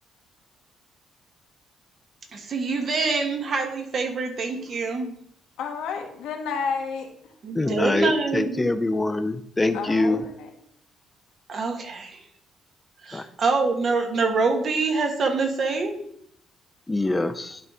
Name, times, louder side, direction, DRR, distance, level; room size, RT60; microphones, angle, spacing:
voice 1, 2.3-5.1 7.4-8.7 11.5-12.2 13.0-16.0, right 4 dB, 50° right, 5 dB, 1.3 m, -25 dB
voice 2, 5.6-7.1 9.7-10.5, left 5 dB, 80° left, 3 dB, 1.3 m, -30 dB
voice 3, 7.5-10.2 13.1-13.2 16.9-17.6, left 2 dB, 15° left, 8 dB, 0.6 m, -24 dB
11.0 x 4.0 x 3.7 m, 0.69 s
cardioid pair, 105°, 0 cm